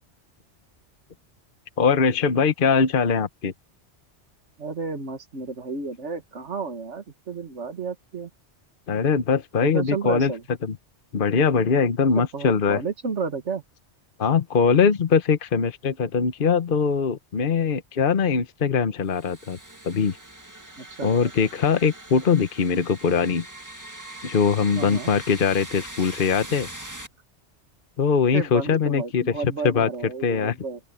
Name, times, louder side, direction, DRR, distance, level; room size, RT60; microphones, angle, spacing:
voice 1, 1.8-3.5 8.9-10.3 10.6-10.8 11.1-12.8 14.2-19.6 19.8-20.2 21.0-23.4 24.2-26.7 28.0-29.2 29.6-29.9 30.2-30.5, left 6 dB, 50° left, 1.1 m, -21 dB
voice 2, 4.6-8.3 9.6-10.4 12.3-13.6 20.8-21.3 24.7-25.1 28.3-30.8, right 5 dB, 90° right, 2.0 m, -32 dB
sound 1, 19.1-27.1, right 1 dB, 15° right, 2.0 m, -41 dB
open air
omnidirectional pair, 1.2 m